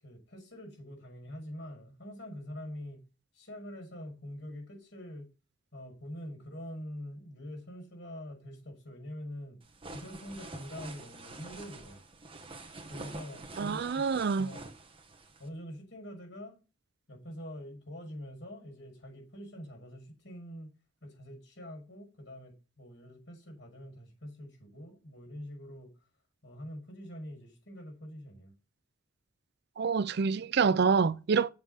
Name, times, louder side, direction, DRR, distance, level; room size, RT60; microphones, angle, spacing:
voice 1, 0.0-3.0 3.3-5.3 5.7-9.6 9.9-12.0 12.9-14.0 14.4-14.7 15.4-16.6 17.1-20.7 21.0-25.9 26.4-28.5, equal, 70° left, 6.2 m, -45 dB
sound 1, 9.6-15.5, right 2 dB, 30° right, 1.3 m, -47 dB
voice 2, 13.6-14.5 29.8-31.5, right 5 dB, 60° right, 0.4 m, -27 dB
7.7 x 7.5 x 5.1 m
head